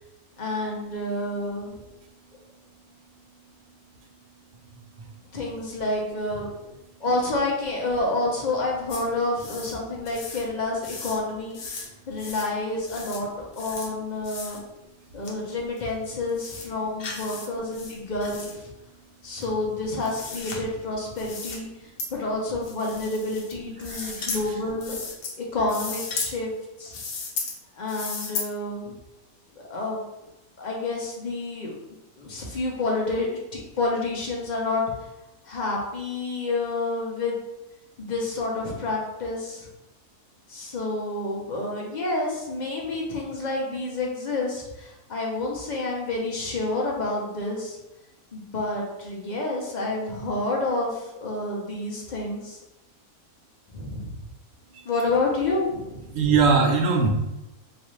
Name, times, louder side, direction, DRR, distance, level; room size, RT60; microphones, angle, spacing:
voice 1, 0.4-1.7 5.3-6.5 7.0-14.6 15.1-18.7 19.2-25.0 25.4-26.5 26.8-27.0 27.8-28.9 29.7-30.0 30.6-31.7 32.2-34.8 35.4-37.4 38.0-39.7 40.5-47.8 48.3-52.6 53.7-54.2 54.8-56.1, left 2 dB, 50° left, -1 dB, 0.5 m, -29 dB
sound 1, 8.9-9.0 9.4-9.7 10.1-10.4 10.8-11.2 11.5-11.9 12.2-12.5 12.8-13.2 13.5-13.9 14.2-14.6 15.2-15.3 15.8-15.9 16.3-16.7 17.0-17.5 17.7-18.5 19.4-20.6 21.2-21.6 22.0-22.1 22.6-23.5 23.8-24.4 24.8-25.3 25.6-26.3 26.9-27.6 27.9-28.5, left 4 dB, 70° left, 1.1 m, -35 dB
voice 2, 23.8-24.4 56.1-57.1, right 4 dB, 65° right, 2 dB, 1.0 m, -21 dB
3.9 x 2.5 x 3.1 m, 0.96 s
omnidirectional pair, 1.6 m